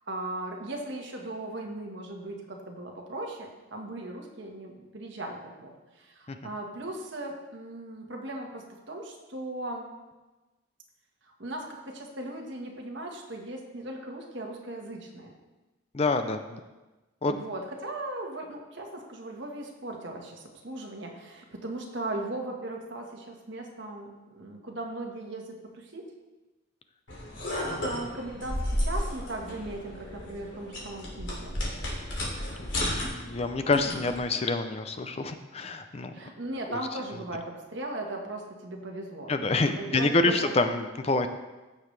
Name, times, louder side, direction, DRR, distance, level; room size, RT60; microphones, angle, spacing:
voice 1, 0.0-9.9 11.4-15.3 17.3-26.1 27.8-31.5 36.1-39.3 39.6-40.5, right 2 dB, 60° right, 1 dB, 1.5 m, -38 dB
voice 2, 15.9-16.6 17.2-17.4 27.7-27.8 32.6-32.7 33.0-36.1 36.7-36.8 39.3-41.3, left 3 dB, 30° left, 8 dB, 0.5 m, -27 dB
sound 1, 27.1-34.2, left 1 dB, 60° left, 2.8 m, -33 dB
15.0 x 6.9 x 3.3 m, 1.1 s
head